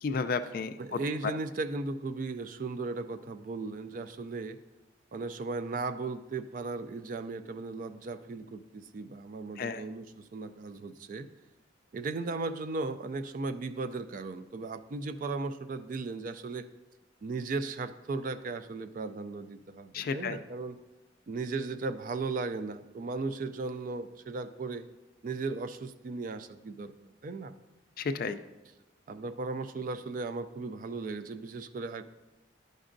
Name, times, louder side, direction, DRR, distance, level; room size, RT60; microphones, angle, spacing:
voice 1, 0.0-1.0 9.6-9.8 19.9-20.4 28.0-28.4, left 4 dB, 50° left, 10 dB, 0.3 m, -32 dB
voice 2, 0.8-4.6 5.1-11.3 11.9-16.7 17.2-20.8 21.3-24.9 25.2-27.6 29.1-32.0, right 3 dB, 45° right, 11 dB, 0.3 m, -36 dB
11.0 x 5.2 x 2.5 m, 1.1 s
head